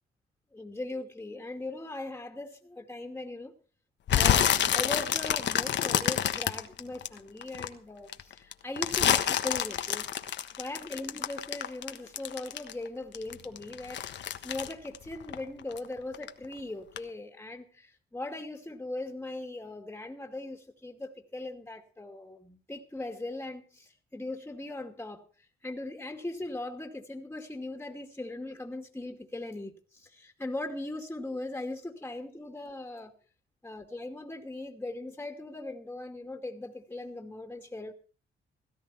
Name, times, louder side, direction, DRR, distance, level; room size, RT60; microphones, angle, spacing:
voice 1, 0.5-3.5 4.1-10.1 10.6-14.0 14.4-33.1 33.6-37.9, left 2 dB, 10° left, 2.6 m, -39 dB
sound 1, 4.1-7.7 8.1-12.9 13.1-15.9 16.1-16.5 17.0-17.1, left 9 dB, 65° left, 1.4 m, -28 dB
17.5 x 13.0 x 4.4 m
cardioid pair, 90°, 20 cm